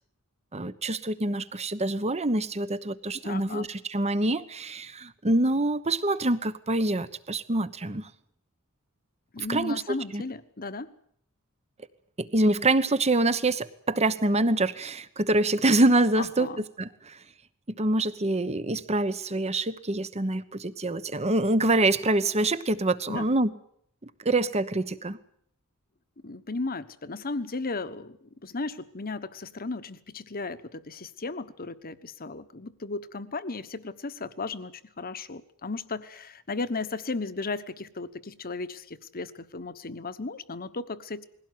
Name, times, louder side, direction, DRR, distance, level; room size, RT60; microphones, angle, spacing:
voice 1, 0.5-8.1 9.4-9.8 10.1-10.2 12.2-17.2 17.8-23.5 24.0-25.2, right 2 dB, 30° right, 14 dB, 1.1 m, -25 dB
voice 2, 3.2-3.7 9.3-10.9 16.2-16.6 23.1-23.3 26.2-28.2 28.4-41.3, left 3 dB, 45° left, 13 dB, 1.2 m, -35 dB
21.0 x 17.0 x 9.4 m, 0.65 s
head